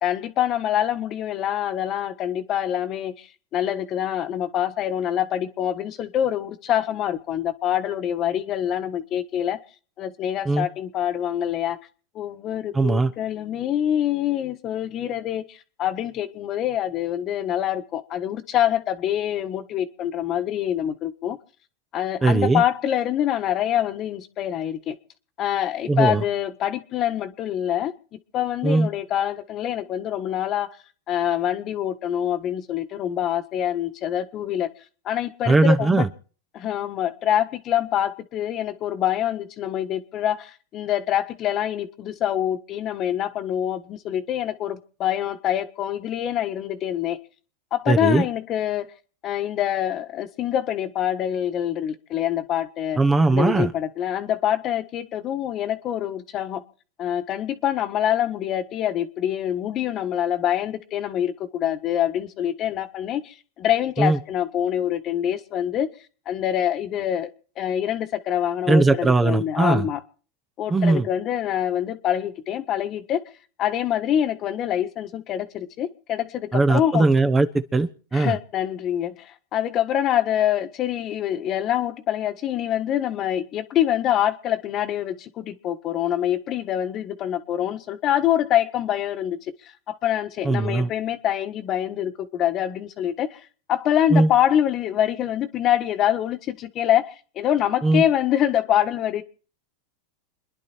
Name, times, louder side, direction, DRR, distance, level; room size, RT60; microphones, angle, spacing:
voice 1, 0.0-3.1 3.5-9.6 10.0-11.8 12.1-21.4 21.9-24.9 25.4-30.7 31.1-34.7 35.0-36.1 36.5-47.2 47.7-48.9 49.2-53.0 53.3-56.6 57.0-65.9 66.3-67.3 67.6-70.0 70.6-73.2 73.6-77.1 78.1-89.4 89.9-93.4 93.7-97.1 97.3-99.2, left 11 dB, 40° left, 1.4 m, -25 dB
voice 2, 12.7-13.1 22.2-22.6 25.9-26.2 28.6-28.9 35.5-36.1 47.9-48.2 53.0-53.7 64.0-64.2 68.7-69.9 70.7-71.1 76.5-78.4 90.4-90.9 94.1-94.3 97.8-98.0, right 3 dB, 15° right, 0.9 m, -19 dB
28.5 x 10.5 x 4.5 m
supercardioid pair, 120°, 0 cm